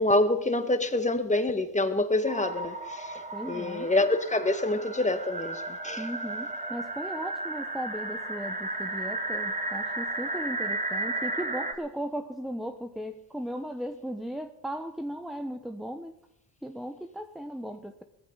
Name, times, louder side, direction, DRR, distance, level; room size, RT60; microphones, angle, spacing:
voice 1, 0.0-6.1, left 2 dB, 15° left, 1.9 m, -27 dB
sound 1, 2.3-11.7, right 2 dB, 15° right, 2.4 m, -34 dB
voice 2, 3.3-3.9 6.0-16.2 16.6-18.0, equal, ahead, 1.1 m, -37 dB
17.5 x 14.5 x 4.1 m
supercardioid pair, 65°, 46 cm